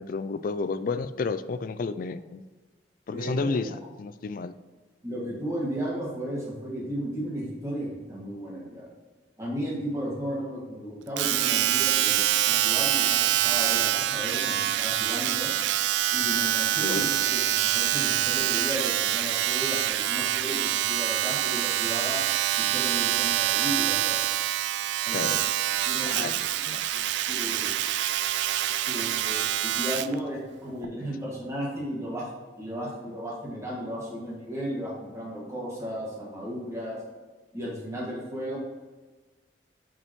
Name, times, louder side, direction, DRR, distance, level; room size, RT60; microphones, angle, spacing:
voice 1, 0.0-2.4 3.1-4.5 16.8-17.1 25.1-25.4 26.0-26.3 26.7-26.8, left 4 dB, 50° left, 13 dB, 0.4 m, -31 dB
voice 2, 3.1-3.8 5.0-8.9 9.4-15.6 16.1-22.2 22.6-24.3 25.0-25.4 25.8-26.3 26.9-27.8 28.8-32.3 32.6-37.0 37.5-38.6, equal, 15° right, -4 dB, 2.0 m, -34 dB
Domestic sounds home sounds, 11.2-30.1 30.8-30.9, right 12 dB, 80° right, 0.3 m, -26 dB
5.4 x 5.3 x 4.6 m, 1.3 s
head